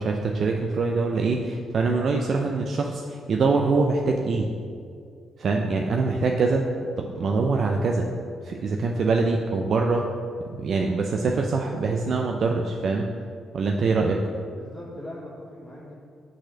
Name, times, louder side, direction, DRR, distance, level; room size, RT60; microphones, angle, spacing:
voice 1, 0.0-4.5 5.4-6.6 7.0-8.1 8.4-10.0 10.5-13.1 13.5-14.2, right 4 dB, 55° right, 2 dB, 0.5 m, -24 dB
voice 2, 14.5-15.9, left 1 dB, ahead, -7 dB, 1.2 m, -40 dB
6.3 x 4.2 x 6.5 m, 2.3 s
cardioid pair, 90°, 0 cm